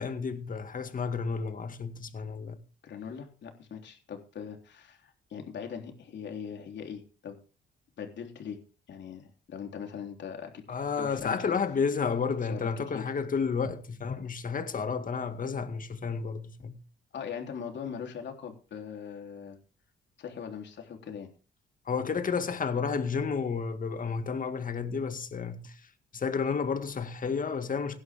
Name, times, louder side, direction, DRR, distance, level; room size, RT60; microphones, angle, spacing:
voice 1, 0.0-2.6 10.7-16.8 21.9-25.8 26.1-28.0, left 5 dB, 45° left, 2.0 m, -31 dB
voice 2, 2.8-7.4 8.0-8.6 8.9-10.6 11.0-11.6 12.5-12.7 12.9-13.0 17.1-19.6 20.2-21.3, left 7 dB, 65° left, 3.6 m, -40 dB
17.0 x 11.0 x 3.7 m
cardioid pair, 90°, 20 cm